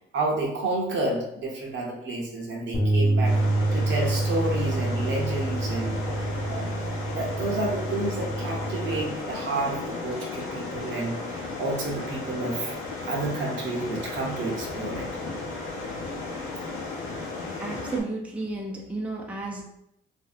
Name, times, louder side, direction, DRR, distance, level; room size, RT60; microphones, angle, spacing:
voice 1, 0.1-3.4 3.7-6.0 6.5-12.8 13.0-15.1, right 2 dB, 70° right, -1 dB, 0.9 m, -30 dB
sound 1, 2.7-9.0, right 2 dB, 45° left, 1.0 m, -27 dB
sound 2, 3.2-18.0, left 3 dB, 85° left, 0.7 m, -34 dB
voice 2, 17.6-19.6, right 2 dB, 5° right, -1 dB, 0.5 m, -32 dB
3.1 x 2.7 x 2.4 m, 0.80 s
cardioid pair, 90°, 20 cm